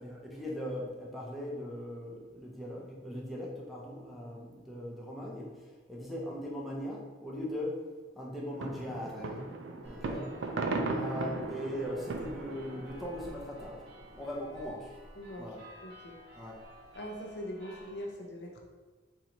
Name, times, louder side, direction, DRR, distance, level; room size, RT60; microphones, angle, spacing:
voice 1, 0.0-7.8 8.2-9.4 9.8-10.3 10.9-13.8 14.1-15.0 15.4-15.6 16.4-16.6, left 1 dB, ahead, -4 dB, 0.5 m, -39 dB
sound 1, 8.5-13.8 14.2-14.3 14.5-14.6, right 3 dB, 80° right, 0.4 m, -37 dB
sound 2, 9.8-18.0, equal, 60° right, 0.8 m, -52 dB
voice 2, 15.2-16.2 16.9-18.6, equal, 60° left, 0 dB, 0.6 m, -42 dB
4.5 x 2.5 x 2.9 m, 1.3 s
head